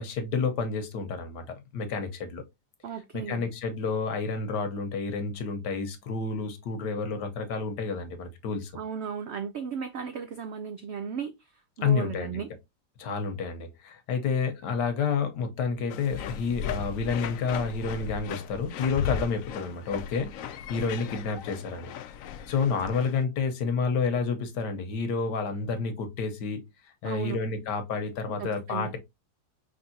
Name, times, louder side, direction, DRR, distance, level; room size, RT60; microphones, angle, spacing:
voice 1, 0.0-2.4 3.1-8.7 11.8-12.4 13.0-21.9 22.5-26.6 27.0-29.0, left 5 dB, 85° left, 1.5 m, -30 dB
voice 2, 2.8-3.4 8.7-12.5 27.0-27.4 28.3-28.9, right 7 dB, 85° right, 0.5 m, -36 dB
sound 1, 15.9-23.2, left 8 dB, 70° left, 0.8 m, -37 dB
5.3 x 3.3 x 2.7 m
omnidirectional pair, 1.7 m